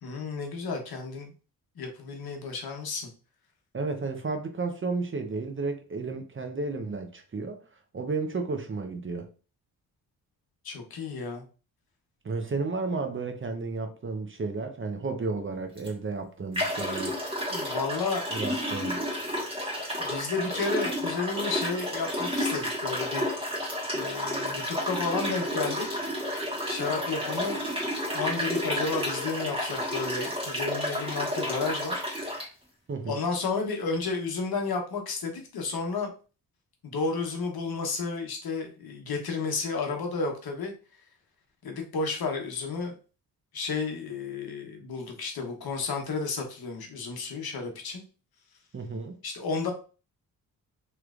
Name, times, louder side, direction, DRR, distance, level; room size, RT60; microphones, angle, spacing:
voice 1, 0.0-1.3 1.8-3.1 10.6-11.4 16.6-16.9 17.5-18.2 20.0-23.2 23.9-26.0 26.7-27.6 28.1-32.0 33.1-36.1 36.8-40.7 41.6-43.0 43.5-48.0 49.2-49.7, left 4 dB, 60° left, 1.0 m, -32 dB
voice 2, 3.7-7.6 7.9-9.3 12.2-17.2 18.3-19.0 32.9-33.2 48.7-49.2, right 3 dB, 30° right, 0.6 m, -32 dB
sound 1, 15.8-15.9 16.5-32.5, equal, 15° right, 1.4 m, -31 dB
3.2 x 3.0 x 2.4 m
cardioid pair, 65°, 41 cm